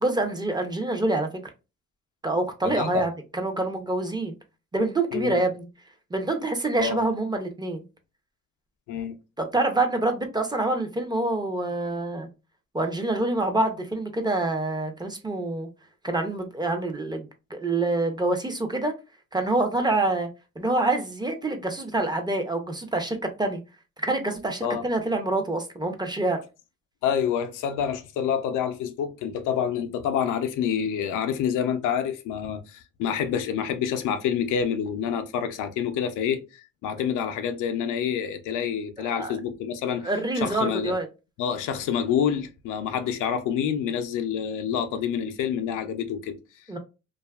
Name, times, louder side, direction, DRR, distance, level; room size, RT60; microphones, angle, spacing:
voice 1, 0.0-1.3 2.2-4.3 4.7-5.7 6.1-7.8 9.4-12.3 12.7-15.7 16.0-17.3 17.5-18.9 19.3-20.3 20.6-23.6 24.0-26.4 39.0-39.3 40.0-41.1 46.7-46.8, right 2 dB, 15° right, 0.5 m, -26 dB
voice 2, 2.7-3.1 5.1-5.4 6.8-7.0 8.9-9.2 24.6-24.8 27.0-36.4 36.8-40.1 40.4-41.0 41.4-46.4, left 8 dB, 85° left, 0.5 m, -27 dB
2.6 x 2.3 x 2.2 m
cardioid pair, 90°, 30 cm